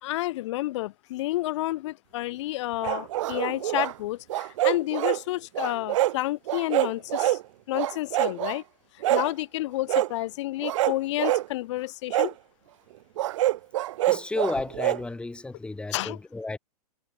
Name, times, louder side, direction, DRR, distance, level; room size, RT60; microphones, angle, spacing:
voice 1, 0.0-7.4 7.7-8.6 9.1-12.3 15.9-16.2, left 17 dB, 50° left, 2.4 m, -30 dB
sound 1, 2.8-3.9 4.3-5.2 5.6-6.2 6.5-7.4 7.7-8.6 9.0-9.3 9.9-10.1 10.6-11.5 12.1-12.3 13.2-15.0, right 15 dB, 50° right, 1.6 m, -25 dB
voice 2, 14.1-16.6, left 2 dB, 5° left, 3.7 m, -32 dB
hypercardioid pair, 145°, 20 cm